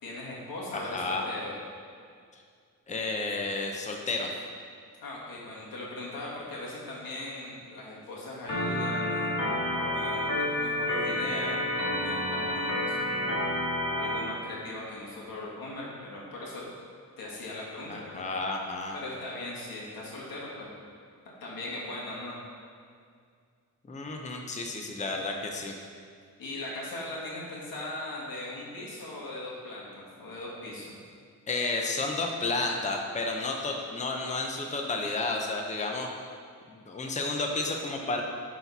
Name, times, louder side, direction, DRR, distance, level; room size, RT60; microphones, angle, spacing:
voice 1, 0.0-1.5 5.0-13.2 13.9-16.7 17.2-18.3 18.9-20.7 21.4-22.4 26.4-31.0, left 2 dB, 90° left, -5 dB, 1.9 m, -39 dB
voice 2, 0.7-1.2 2.3-2.4 2.9-4.3 17.9-19.0 23.9-25.7 31.5-36.1 36.7-38.2, left 3 dB, 20° left, 1 dB, 0.6 m, -31 dB
Organ, 8.5-14.2, left 1 dB, 60° left, 2.0 m, -29 dB
10.5 x 4.1 x 4.1 m, 2.2 s
wide cardioid pair, 120°, 34 cm